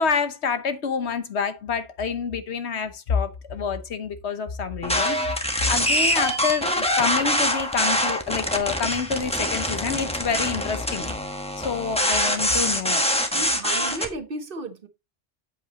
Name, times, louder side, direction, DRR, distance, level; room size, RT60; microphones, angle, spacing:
voice 1, 0.0-11.1 11.6-13.0, left 6 dB, 65° left, 1.2 m, -27 dB
sound 1, 4.8-14.1, equal, 5° left, 1.1 m, -24 dB
voice 2, 13.3-14.9, right 2 dB, 50° right, 1.1 m, -34 dB
8.0 x 7.9 x 2.9 m
omnidirectional pair, 1.2 m